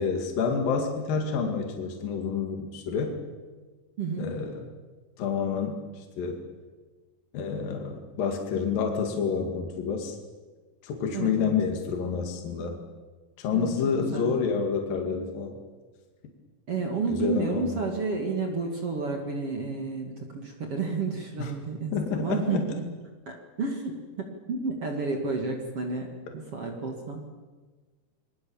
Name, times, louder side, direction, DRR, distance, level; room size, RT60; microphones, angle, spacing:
voice 1, 0.0-3.2 4.2-4.6 5.2-6.4 7.3-10.2 10.8-12.8 13.4-15.6 17.1-17.7 21.4-21.5 21.9-22.7, left 6 dB, 65° left, 2 dB, 3.8 m, -28 dB
voice 2, 4.0-4.3 11.1-11.5 13.5-13.7 14.1-14.3 16.7-22.6 23.3-27.3, right 4 dB, 45° right, 2 dB, 2.7 m, -31 dB
26.5 x 22.0 x 7.2 m, 1.3 s
omnidirectional pair, 4.4 m